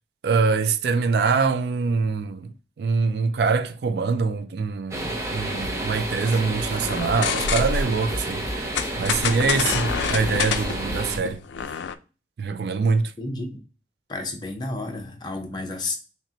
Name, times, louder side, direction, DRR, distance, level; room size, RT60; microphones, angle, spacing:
voice 1, 0.2-11.4 12.4-13.1, right 4 dB, 65° right, 0.3 m, -24 dB
sound 1, 4.9-11.2, right 1 dB, 15° right, 0.6 m, -30 dB
sound 2, 5.6-6.1 6.3-6.4 6.7-6.8 7.0-8.9 9.1-9.3 9.5-11.2, left 1 dB, 55° left, 0.9 m, -36 dB
sound 3, 6.8-8.0 8.8-12.0, left 6 dB, 85° left, 0.4 m, -27 dB
voice 2, 13.2-13.6 14.1-15.9, left 2 dB, 25° left, 0.6 m, -31 dB
5.8 x 2.1 x 2.8 m
head